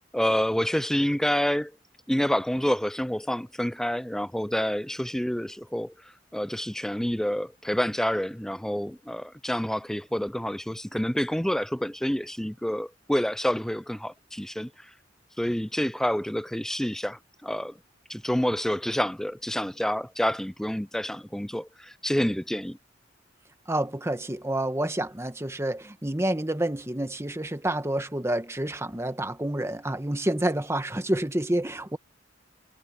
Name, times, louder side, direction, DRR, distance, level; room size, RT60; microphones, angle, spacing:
voice 1, 0.0-1.7 2.1-5.9 6.3-14.7 15.4-17.8 18.1-22.8, equal, 5° left, 0.4 m, -28 dB
voice 2, 23.7-32.0, right 1 dB, 15° right, 1.3 m, -28 dB
head